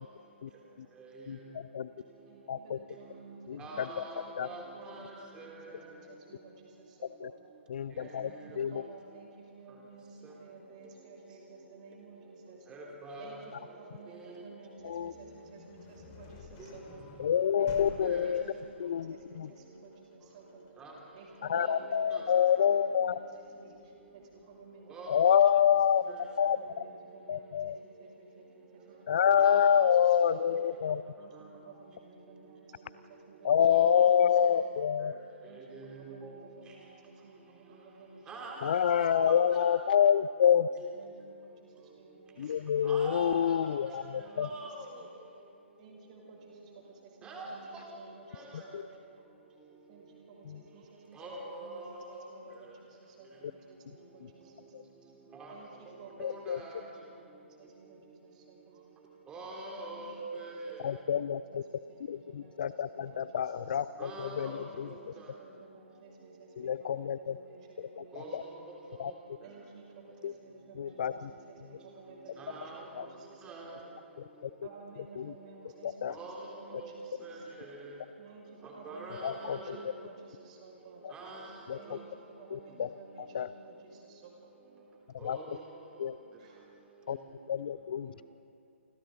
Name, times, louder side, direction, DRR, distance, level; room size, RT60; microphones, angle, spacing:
voice 1, 1.3-1.9 2.5-2.8 3.5-4.5 7.2-7.3 7.7-8.3 8.6-8.8 14.8-15.1 17.2-18.4 18.8-19.5 21.5-23.1 25.1-26.0 26.4-26.6 27.3-27.8 29.1-31.0 33.4-35.1 38.6-40.7 42.4-44.5 48.7-48.8 50.5-50.6 54.7-54.8 56.2-56.6 60.8-61.6 62.1-64.9 66.6-67.4 67.8-68.4 69.0-69.1 70.2-70.3 70.8-71.3 72.9-73.1 74.4-74.5 75.2-75.3 75.8-76.2 79.2-79.8 81.0-81.1 81.7-82.0 82.5-82.9 83.3-83.5 85.2-85.4 86.0-86.2 87.1-87.2 87.5-88.1, left 8 dB, 45° left, 16 dB, 0.5 m, -27 dB
voice 2, 2.2-7.4 8.0-12.7 13.2-17.0 17.6-20.6 21.1-22.4 22.7-25.7 26.0-26.1 26.6-30.5 31.2-31.3 31.6-34.0 34.4-34.8 35.4-39.3 40.9-45.1 45.8-49.0 49.9-54.5 55.5-58.9 59.7-60.1 60.7-63.8 64.4-64.7 65.1-68.7 69.4-73.9 74.6-77.5 78.2-81.0 81.7-84.5 86.4-86.7, right 4 dB, 35° right, 0 dB, 5.6 m, -54 dB
voice 3, 3.6-5.0 5.4-5.6 12.7-13.3 14.1-14.4 18.0-18.3 20.8-20.9 21.5-21.7 22.1-22.2 24.9-25.1 29.4-29.6 33.6-33.9 35.0-35.1 35.7-36.3 38.3-39.0 42.9-43.6 43.9-44.0 44.4-44.7 47.2-47.5 48.3-48.5 51.1-52.1 55.4-55.5 56.2-56.7 59.3-60.6 64.0-64.9 68.1-68.4 72.4-72.8 73.4-73.8 76.1-76.4 76.8-76.9 77.2-77.4 77.8-77.9 78.8-79.7 81.1-81.5 85.2-85.6, right 3 dB, 10° right, -1 dB, 2.9 m, -44 dB
sound 1, 14.8-24.6, left 5 dB, 25° left, 2.3 m, -53 dB
29.5 x 25.5 x 3.9 m, 2.5 s
figure-of-eight pair, 135°, 7 cm